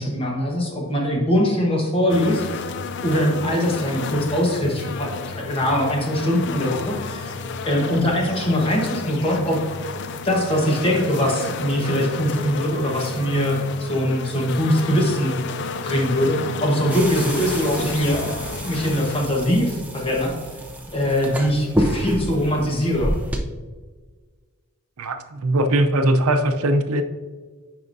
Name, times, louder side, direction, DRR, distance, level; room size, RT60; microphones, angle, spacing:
voice 1, 0.0-2.7 3.0-9.6 10.2-15.4 15.8-18.4 18.6-20.3 20.9-23.1, equal, 25° left, -1 dB, 1.2 m, -22 dB
sound 1, 2.1-19.3, left 5 dB, 50° left, 0.4 m, -32 dB
sound 2, 16.9-23.4, equal, 5° right, 0.5 m, -28 dB
voice 2, 25.0-27.0, right 1 dB, 80° right, 7 dB, 0.6 m, -20 dB
9.4 x 5.0 x 2.6 m, 1.4 s
head